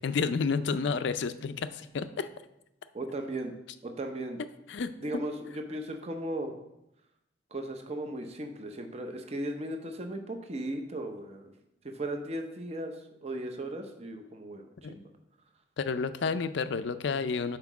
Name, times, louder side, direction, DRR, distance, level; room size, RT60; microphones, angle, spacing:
voice 1, 0.0-2.3 4.7-5.2 14.8-14.9 15.8-17.6, left 5 dB, 60° left, 12 dB, 0.4 m, -30 dB
voice 2, 2.9-3.5 3.8-4.4 5.0-6.6 7.5-11.5 11.8-12.9 13.2-15.1, right 1 dB, 30° right, 5 dB, 0.6 m, -36 dB
5.8 x 4.5 x 5.9 m, 0.85 s
head